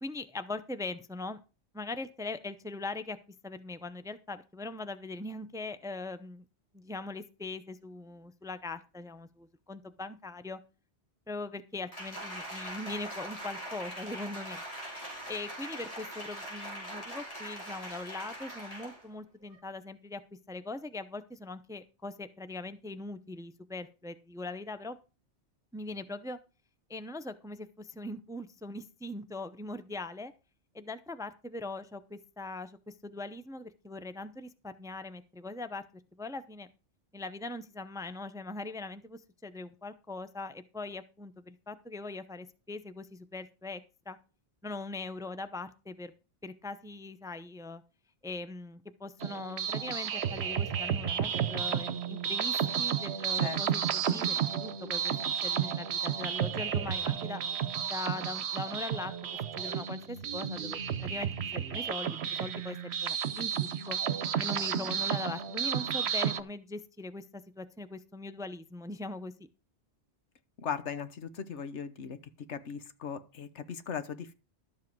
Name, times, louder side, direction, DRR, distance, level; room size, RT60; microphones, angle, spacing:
voice 1, 0.0-1.4 1.7-3.2 3.4-6.4 6.7-10.6 11.3-14.6 15.3-20.2 20.5-25.0 25.7-26.4 26.9-30.3 30.7-35.8 36.2-36.7 37.1-43.8 44.1-44.2 44.6-46.1 46.4-47.8 48.2-55.1 55.4-57.4 57.9-59.1 59.6-64.0 64.4-69.3, left 2 dB, 5° right, 0.5 m, -41 dB
Applause, 11.9-19.1 19.5-19.6, right 1 dB, 30° left, 4.8 m, -42 dB
sound 1, 49.2-66.4, right 8 dB, 70° right, 1.1 m, -32 dB
voice 2, 70.6-72.2 72.5-74.3, left 7 dB, 85° left, 1.3 m, -38 dB
12.5 x 7.4 x 4.6 m
omnidirectional pair, 1.2 m